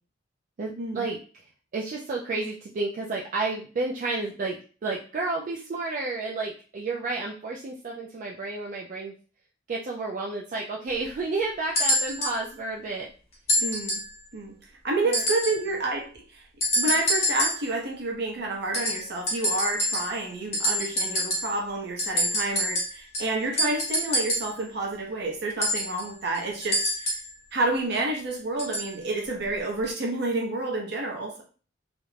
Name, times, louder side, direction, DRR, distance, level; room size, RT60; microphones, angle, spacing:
voice 1, 0.6-1.2 1.7-4.6 4.8-9.1 9.7-13.1 15.0-15.2, right 3 dB, 45° right, -1 dB, 0.3 m, -31 dB
sound 1, 11.7-12.4 13.5-14.2 15.1-15.7 16.6-17.7 18.7-20.3 20.5-21.6 22.0-24.6 25.6-27.3 28.6-28.9 29.8-29.9, equal, 35° left, 0.9 m, -27 dB
voice 2, 13.6-14.0 14.3-14.5 14.8-16.5 16.8-27.1 27.5-31.4, right 2 dB, 60° right, 1 dB, 0.7 m, -29 dB
2.4 x 2.1 x 3.1 m, 0.39 s
head